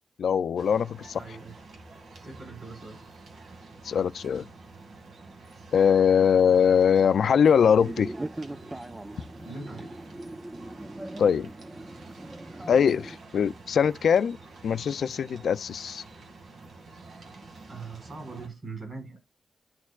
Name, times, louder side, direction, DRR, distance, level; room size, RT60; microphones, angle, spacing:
voice 1, 0.2-1.2 3.8-4.5 5.7-8.1 11.2-11.5 12.7-14.4 14.6-16.0, left 7 dB, 90° left, 0.4 m, -22 dB
sound 1, 0.6-18.5, right 3 dB, 85° right, 2.2 m, -48 dB
voice 2, 1.2-1.6 2.2-3.0 9.4-10.0 17.7-19.2, right 3 dB, 50° right, 5.4 m, -41 dB
sound 2, 7.7-13.2, right 1 dB, 20° right, 0.7 m, -39 dB
12.5 x 4.4 x 2.4 m
wide cardioid pair, 85°, 0 cm